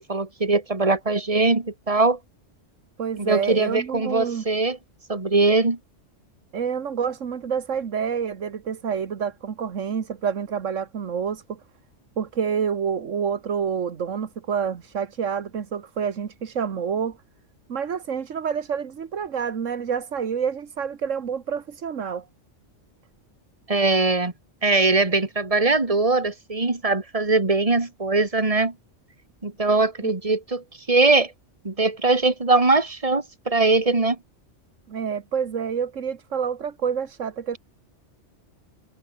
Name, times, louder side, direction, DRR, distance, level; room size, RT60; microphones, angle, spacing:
voice 1, 0.0-2.2 3.2-4.8 5.1-5.8 23.7-24.3 24.6-28.7 29.4-31.3 31.6-34.2, right 3 dB, 30° right, 2.3 m, -21 dB
voice 2, 3.0-4.4 6.5-11.6 12.2-17.2 17.7-22.3 30.0-30.1 34.9-37.6, right 7 dB, 85° right, 1.7 m, -28 dB
omnidirectional pair, 1.3 m